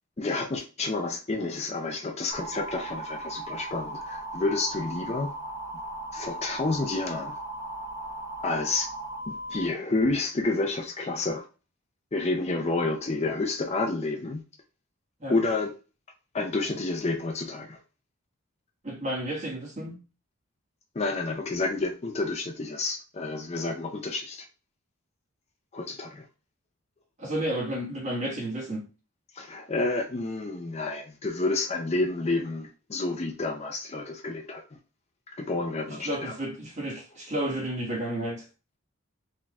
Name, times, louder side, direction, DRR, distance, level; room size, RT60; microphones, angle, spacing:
voice 1, 0.2-5.3 6.1-7.4 8.4-8.9 9.3-11.5 12.1-14.4 15.3-15.7 16.3-17.8 20.9-24.5 25.7-26.3 29.3-34.8 35.4-36.4, left 3 dB, 30° left, 0.5 m, -29 dB
sound 1, 2.3-9.6, right 1 dB, 15° right, 1.0 m, -37 dB
voice 2, 18.8-20.0 27.2-28.8 35.9-38.5, right 1 dB, 35° right, 1.4 m, -32 dB
4.2 x 3.6 x 2.3 m
head